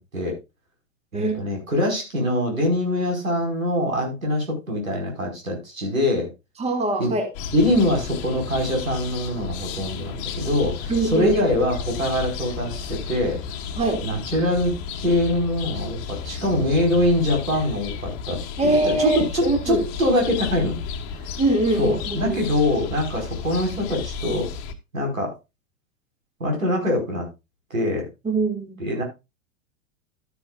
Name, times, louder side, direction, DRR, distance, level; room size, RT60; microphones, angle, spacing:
voice 1, 1.1-6.3 7.0-7.2 7.5-13.4 14.0-14.7 15.0-20.8 21.8-24.5 24.9-25.3 26.4-27.3 27.7-28.1 28.8-29.0, left 1 dB, 80° right, 1 dB, 5.3 m, -23 dB
voice 2, 6.6-7.3 10.9-11.3 13.8-14.0 18.6-19.9 21.4-22.4 28.2-28.8, right 2 dB, 15° right, 4 dB, 2.5 m, -23 dB
sound 1, 7.3-24.7, left 6 dB, 40° left, 1.5 m, -33 dB
12.5 x 10.5 x 2.5 m, 0.25 s
figure-of-eight pair, 95°, 40 cm